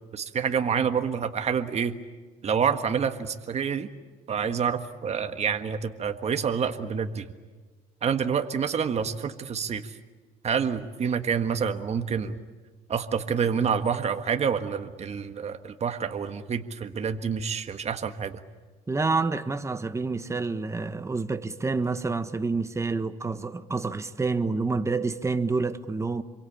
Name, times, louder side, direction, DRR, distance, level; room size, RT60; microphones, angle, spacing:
voice 1, 0.1-1.9 2.4-3.9 4.3-7.3 8.0-9.8 10.4-12.4 12.9-18.4, right 7 dB, 40° right, 1.6 m, -27 dB
voice 2, 18.9-26.2, right 3 dB, 15° right, 1.3 m, -28 dB
27.5 x 23.5 x 8.7 m
cardioid pair, 110°, 17 cm